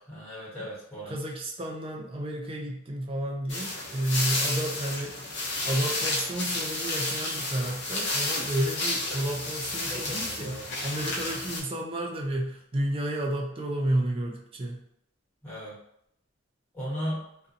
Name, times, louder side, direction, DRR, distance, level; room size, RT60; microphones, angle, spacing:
voice 1, 0.1-1.1 9.9-10.6 15.4-15.7 16.7-17.2, equal, 10° left, -10 dB, 1.2 m, -36 dB
voice 2, 1.1-14.8, right 1 dB, 25° right, 1 dB, 0.4 m, -31 dB
sound 1, 3.5-11.6, left 2 dB, 55° left, 0.7 m, -31 dB
2.4 x 2.2 x 2.6 m, 0.75 s
head